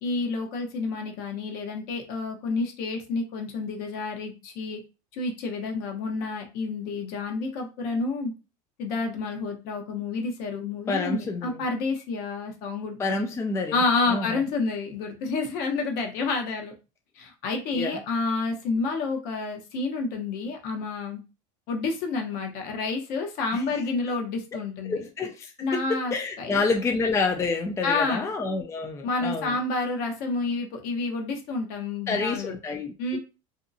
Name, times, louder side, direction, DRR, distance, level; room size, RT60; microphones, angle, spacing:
voice 1, 0.0-4.8 5.1-8.3 8.8-13.2 13.7-16.7 17.2-21.2 21.7-25.0 25.6-26.6 27.8-28.3 29.0-32.5 33.0-33.2, left 3 dB, 60° left, 3 dB, 0.9 m, -29 dB
voice 2, 10.9-11.6 13.0-14.4 17.7-18.0 23.5-23.6 24.9-25.8 26.1-29.6 32.1-33.2, left 3 dB, 15° left, 4 dB, 0.4 m, -28 dB
2.7 x 2.2 x 2.6 m, 0.30 s
supercardioid pair, 105°, 17 cm